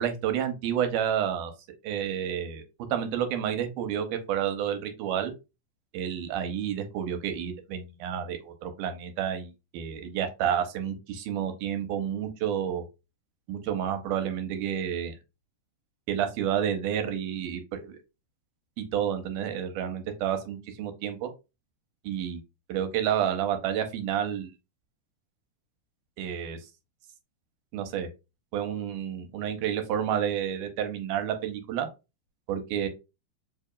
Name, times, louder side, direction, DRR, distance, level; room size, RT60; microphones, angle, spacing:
voice 1, 0.0-1.5 1.8-2.6 2.9-5.3 5.9-12.8 13.5-15.2 16.1-18.0 18.8-21.3 22.0-22.4 22.7-24.5 26.2-26.6 27.7-28.1 28.5-31.9 32.5-32.9, right 9 dB, 85° right, 7 dB, 2.2 m, -30 dB
4.8 x 2.8 x 2.3 m, 0.26 s
omnidirectional pair, 3.7 m